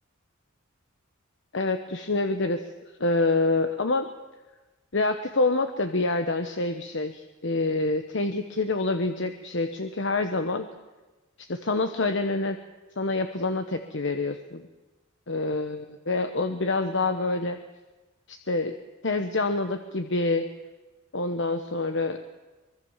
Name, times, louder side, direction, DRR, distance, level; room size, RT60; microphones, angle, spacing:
voice 1, 1.5-2.7 3.0-4.1 4.9-10.7 11.4-12.6 13.0-14.7 15.3-17.6 18.3-18.7 19.0-20.5 21.1-22.2, left 2 dB, 60° left, 8 dB, 1.1 m, -27 dB
24.5 x 21.5 x 7.3 m, 1.1 s
head